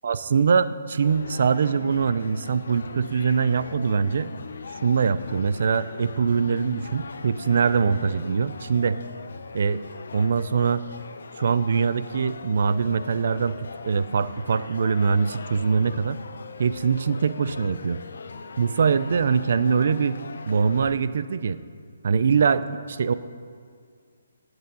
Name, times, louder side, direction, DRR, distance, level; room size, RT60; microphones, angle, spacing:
voice 1, 0.0-4.3 4.8-9.0 9.5-9.8 10.1-10.8 11.4-13.6 13.8-16.2 16.6-18.0 18.6-20.2 20.4-21.6 22.0-23.1, right 6 dB, 60° right, 15 dB, 0.5 m, -23 dB
sound 1, 1.0-20.9, left 4 dB, 75° left, 0.7 m, -40 dB
9.0 x 8.1 x 8.3 m, 2.2 s
hypercardioid pair, 160°, 0 cm